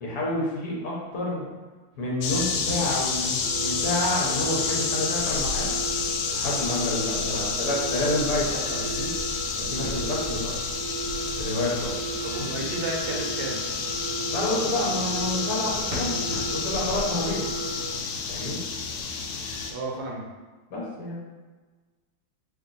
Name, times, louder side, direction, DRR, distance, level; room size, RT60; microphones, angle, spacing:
voice 1, 0.0-1.5 2.0-5.7 6.3-9.1 9.5-10.6 11.3-11.9 12.4-12.5 14.3-17.5 18.3-18.6 20.7-21.2, left 1 dB, 55° left, -4 dB, 1.3 m, -29 dB
sound 1, 1.9-4.7 6.4-7.5 9.8-12.5 15.9-16.7, left 1 dB, 35° right, 1.0 m, -42 dB
sound 2, 2.2-19.7, left 5 dB, 80° left, 1.4 m, -29 dB
sound 3, 3.4-18.0, right 4 dB, 85° right, 1.5 m, -36 dB
voice 2, 12.2-13.6 19.7-20.3, right 2 dB, 65° right, -1 dB, 1.2 m, -33 dB
3.1 x 2.9 x 3.9 m, 1.3 s
omnidirectional pair, 2.3 m